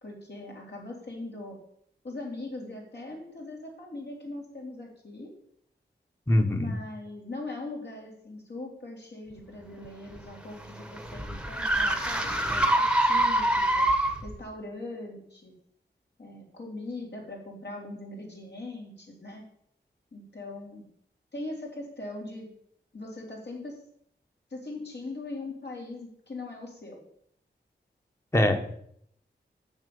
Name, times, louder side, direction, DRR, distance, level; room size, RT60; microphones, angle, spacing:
voice 1, 0.0-1.6 2.0-5.3 6.5-13.9 14.2-15.5 16.2-19.4 20.1-20.9 21.3-22.5 22.9-23.8 24.5-27.0, left 2 dB, 65° left, -2 dB, 3.5 m, -40 dB
voice 2, 6.3-6.7 28.3-28.8, left 1 dB, 15° left, 6 dB, 1.3 m, -23 dB
sound 1, 9.8-14.4, right 1 dB, 5° right, 1.2 m, -26 dB
7.2 x 7.2 x 7.0 m, 0.68 s
wide cardioid pair, 65°, 19 cm